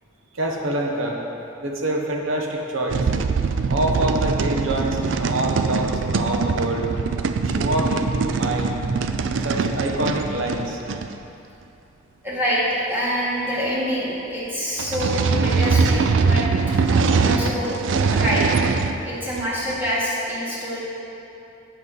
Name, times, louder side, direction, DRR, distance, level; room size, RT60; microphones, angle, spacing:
voice 1, 0.3-1.2 1.6-3.1 3.7-6.9 7.4-8.8 9.4-10.8, right 1 dB, 90° right, 1 dB, 1.1 m, -26 dB
sound 1, 2.9-11.2 14.8-19.0 19.4-19.9, right 4 dB, 70° right, 0.4 m, -22 dB
voice 2, 12.2-16.4 16.9-17.8 18.1-18.6 19.0-20.8, equal, 10° right, -8 dB, 2.0 m, -26 dB
8.0 x 6.1 x 5.3 m, 2.8 s
head